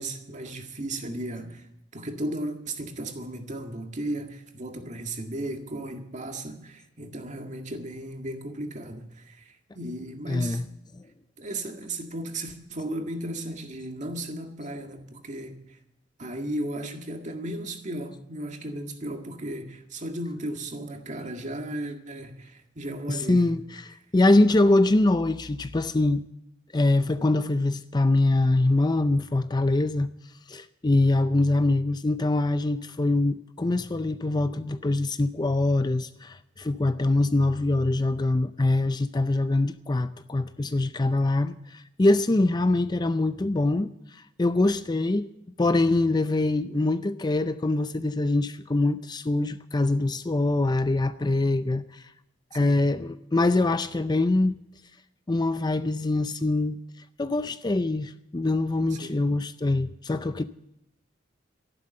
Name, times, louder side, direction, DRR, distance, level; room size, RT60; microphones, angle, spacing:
voice 1, 0.0-1.7 1.9-10.6 11.4-15.8 16.2-23.5 52.6-52.8 58.9-59.2, right 1 dB, 40° right, 1.9 m, -35 dB
voice 2, 10.3-10.6 23.1-26.2 26.7-30.1 30.5-45.3 45.6-52.1 52.5-54.5 55.3-56.8 57.2-60.4, left 2 dB, 20° left, 0.5 m, -24 dB
13.0 x 11.5 x 7.8 m
head